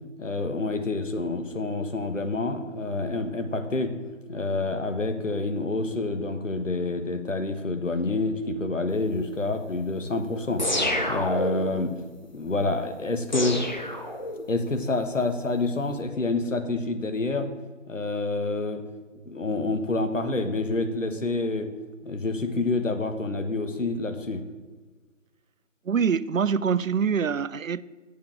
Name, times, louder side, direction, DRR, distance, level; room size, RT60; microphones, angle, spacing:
voice 1, 0.2-3.9 4.3-10.6 11.1-11.9 12.3-13.6 14.5-17.5 17.9-18.8 19.3-21.7 22.0-24.4, left 2 dB, 75° left, 1.3 m, -28 dB
sound 1, 10.6-11.8 13.3-14.6, left 1 dB, 35° left, 0.8 m, -28 dB
voice 2, 25.8-27.8, right 6 dB, 85° right, 0.5 m, -24 dB
7.0 x 7.0 x 7.3 m
figure-of-eight pair, 165°, 39 cm